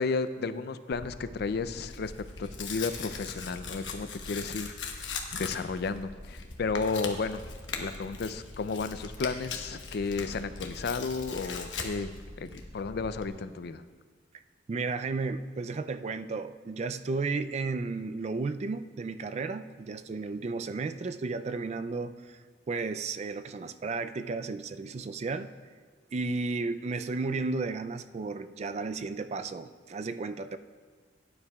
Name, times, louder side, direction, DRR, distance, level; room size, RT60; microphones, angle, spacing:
voice 1, 0.0-2.1 2.4-7.4 7.8-12.1 12.4-13.8, left 4 dB, 60° left, 12 dB, 0.4 m, -33 dB
Tearing, 0.9-13.3, left 4 dB, 90° left, 1.1 m, -40 dB
voice 2, 14.7-22.4 22.7-25.5 26.1-30.6, right 3 dB, 35° right, 10 dB, 0.3 m, -33 dB
17.0 x 9.8 x 2.3 m, 1.5 s
head